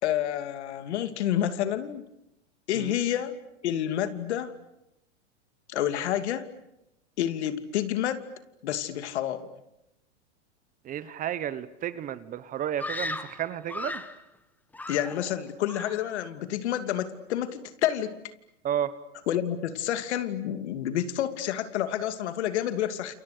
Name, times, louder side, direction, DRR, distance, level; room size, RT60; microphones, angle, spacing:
voice 1, 0.0-2.0 2.7-3.3 3.6-4.5 5.7-6.5 7.2-8.2 8.6-9.5 14.9-18.2 19.3-23.1, left 11 dB, 65° left, 11 dB, 2.7 m, -29 dB
voice 2, 10.8-14.0 18.6-18.9, right 10 dB, 20° right, 15 dB, 1.2 m, -32 dB
Screaming, 12.8-14.2 14.7-15.4 15.7-16.1, left 2 dB, 5° left, 1.3 m, -36 dB
29.5 x 28.5 x 6.7 m, 0.85 s
hypercardioid pair, 140°, 36 cm